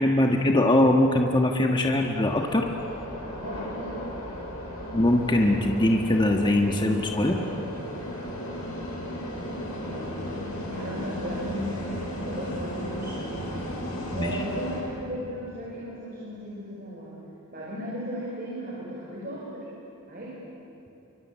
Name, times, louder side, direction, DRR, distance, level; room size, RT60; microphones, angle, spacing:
voice 1, 0.0-2.7 4.9-7.4 14.1-14.4, left 1 dB, 20° left, 2 dB, 1.4 m, -22 dB
sound 1, 1.9-14.8, equal, 75° left, 7.6 m, -35 dB
voice 2, 3.4-4.0 9.8-13.7 14.1-17.2 17.5-19.7 20.1-20.4, equal, 40° right, -5 dB, 5.4 m, -36 dB
28.5 x 24.0 x 8.5 m, 3.0 s
head